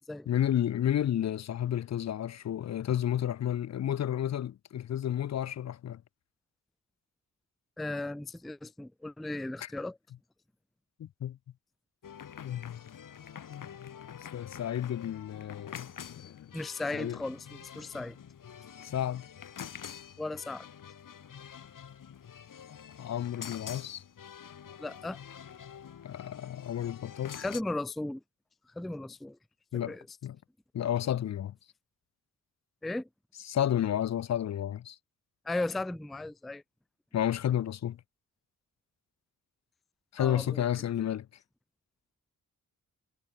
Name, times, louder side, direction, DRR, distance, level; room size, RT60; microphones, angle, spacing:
voice 1, 0.3-6.0 9.6-9.7 11.0-11.4 12.4-12.8 13.5-14.0 14.3-16.5 16.9-17.2 18.8-19.3 23.0-24.0 26.0-27.4 29.7-30.0 30.2-30.4 30.7-31.5 33.5-35.0 37.1-38.0 40.1-41.3, left 10 dB, 55° left, 0.5 m, -31 dB
voice 2, 7.8-10.0 16.5-18.2 20.2-20.7 24.8-25.2 27.4-28.2 28.7-29.4 29.7-30.1 32.8-33.1 35.5-36.6 40.2-40.6, left 2 dB, ahead, 0.3 m, -36 dB
sound 1, 12.0-27.6, left 8 dB, 70° left, 3.6 m, -47 dB
wide cardioid pair, 100°, 33 cm